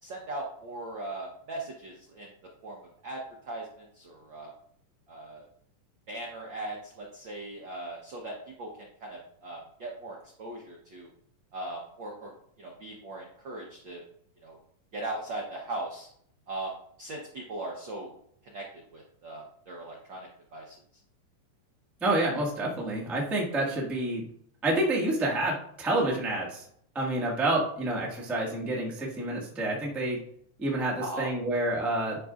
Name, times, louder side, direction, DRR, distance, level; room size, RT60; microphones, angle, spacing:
voice 1, 0.0-2.3 2.6-4.5 5.1-5.5 6.1-11.1 11.5-12.3 12.6-14.0 14.4-14.6 14.9-16.1 16.5-18.1 18.4-18.6 18.9-20.8 31.0-31.3, right 2 dB, 85° right, -1 dB, 1.0 m, -39 dB
voice 2, 22.0-24.3 24.6-26.6 26.9-30.2 30.6-32.2, right 1 dB, ahead, -4 dB, 0.3 m, -28 dB
11.0 x 5.2 x 2.5 m, 0.67 s
omnidirectional pair, 3.7 m